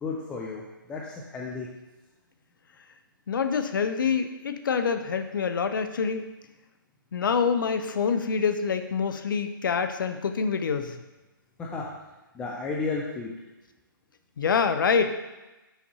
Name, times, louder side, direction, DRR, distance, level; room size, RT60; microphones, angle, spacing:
voice 1, 0.0-0.6 0.9-1.7 11.6-11.9 12.3-13.3, left 4 dB, 10° left, -2 dB, 0.4 m, -32 dB
voice 2, 3.3-6.3 7.1-11.0 14.4-15.1, left 6 dB, 65° left, 9 dB, 0.6 m, -26 dB
5.8 x 5.7 x 2.8 m, 1.1 s
hypercardioid pair, 150°, 12 cm